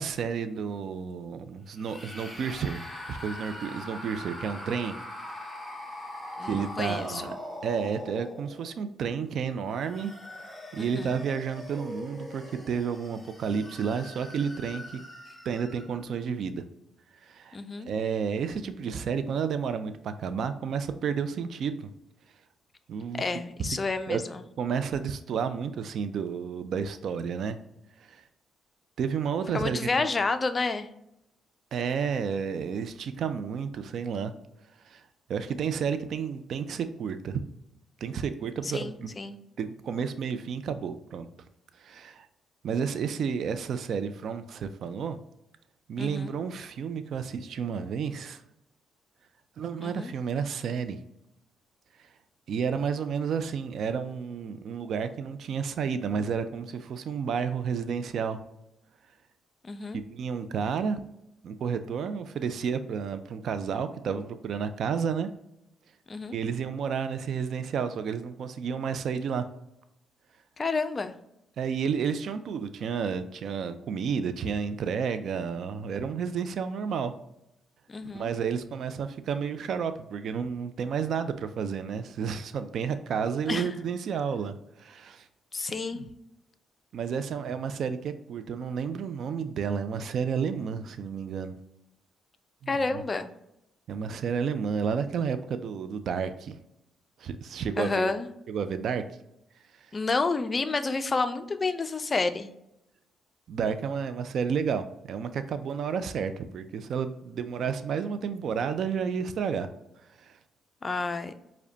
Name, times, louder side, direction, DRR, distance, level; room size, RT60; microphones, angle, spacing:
voice 1, 0.0-5.0 6.4-7.3 7.6-10.1 10.7-15.0 15.5-16.6 17.2-17.6 17.9-21.9 22.9-23.8 24.1-24.2 24.6-27.6 28.0-28.2 29.0-30.1 31.7-34.3 34.8-35.0 35.3-37.4 38.0-39.1 39.6-41.3 41.8-42.3 42.6-45.2 45.9-48.4 49.6-51.0 52.0-52.1 52.5-58.4 59.9-61.0 61.4-65.3 66.3-69.5 71.6-77.1 78.1-85.3 85.9-86.0 86.9-91.6 92.6-93.0 93.9-96.6 97.2-98.1 98.5-99.0 99.7-99.9 103.5-109.7 110.2-110.4, right 6 dB, 65° right, 10 dB, 0.3 m, -31 dB
sound 1, 1.8-8.8 9.5-16.1, left 1 dB, 5° left, 0.8 m, -42 dB
voice 2, 6.4-7.4 10.8-11.2 17.5-17.9 23.1-24.4 29.5-30.9 38.6-39.4 46.0-46.3 49.8-50.1 59.6-60.0 66.1-66.3 70.6-71.1 77.9-78.3 83.5-83.7 85.5-86.0 92.7-93.3 97.8-98.3 99.9-102.5 110.8-111.3, left 3 dB, 30° left, 10 dB, 0.3 m, -30 dB
4.9 x 2.2 x 2.7 m, 0.82 s
cardioid pair, 90°, 0 cm